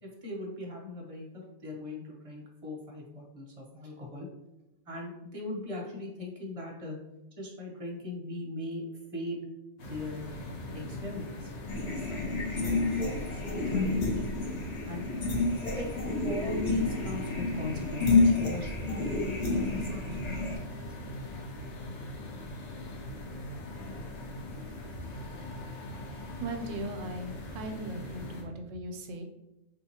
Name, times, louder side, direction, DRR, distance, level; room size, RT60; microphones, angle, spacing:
voice 1, 0.0-4.3 4.9-7.0 7.4-8.8 9.1-9.5 9.9-10.2 10.7-11.5 11.9-13.0 13.3-14.3 14.9-15.1 15.8-15.9 16.2-20.9, left 2 dB, 35° right, -1 dB, 0.7 m, -40 dB
sound 1, 9.8-28.4, left 1 dB, 65° left, 1.0 m, -41 dB
sound 2, 11.7-20.6, left 3 dB, 40° left, 0.7 m, -29 dB
voice 2, 26.4-29.2, right 1 dB, 85° right, 5 dB, 1.0 m, -38 dB
3.6 x 2.8 x 2.8 m, 0.93 s
omnidirectional pair, 1.3 m